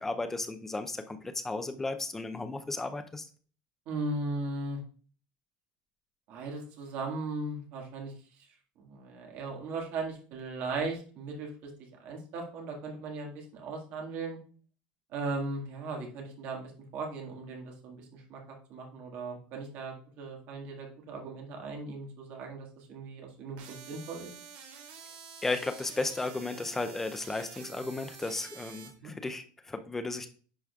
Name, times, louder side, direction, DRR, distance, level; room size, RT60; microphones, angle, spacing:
voice 1, 0.0-3.3 25.4-30.3, left 3 dB, 5° left, 8 dB, 0.4 m, -34 dB
voice 2, 3.9-4.8 6.3-8.1 8.8-11.7 12.0-14.4 15.1-16.6 16.9-18.4 18.7-24.3 29.0-29.1, right 3 dB, 40° right, 1 dB, 1.8 m, -37 dB
sound 1, 23.6-28.9, right 6 dB, 65° right, 2.6 m, -48 dB
10.5 x 5.0 x 2.3 m, 0.41 s
cardioid pair, 180°, 5 cm